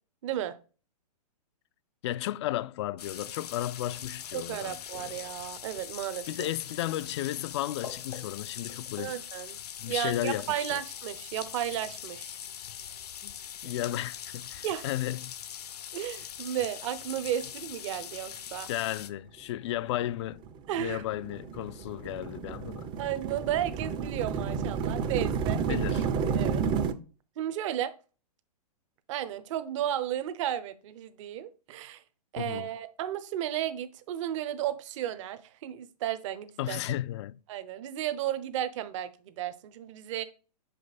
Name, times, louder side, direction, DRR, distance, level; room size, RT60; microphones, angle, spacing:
voice 1, 0.2-0.5 4.3-6.5 9.0-9.6 9.9-12.4 14.6-14.9 15.9-18.7 20.7-21.0 23.0-25.9 26.3-26.6 27.4-27.9 29.1-32.0 32.3-36.8 37.5-40.2, right 11 dB, 50° right, 0.8 m, -33 dB
voice 2, 2.0-5.1 6.3-9.2 9.8-10.8 13.2-13.3 13.6-15.3 18.7-20.4 20.8-22.9 25.7-26.5 32.4-32.7 36.6-37.4, left 13 dB, 45° left, 0.4 m, -34 dB
sound 1, 3.0-19.1, left 9 dB, 70° left, 0.7 m, -42 dB
sound 2, 20.0-26.9, right 6 dB, 20° right, 0.5 m, -31 dB
5.9 x 5.4 x 4.1 m
hypercardioid pair, 130°, 21 cm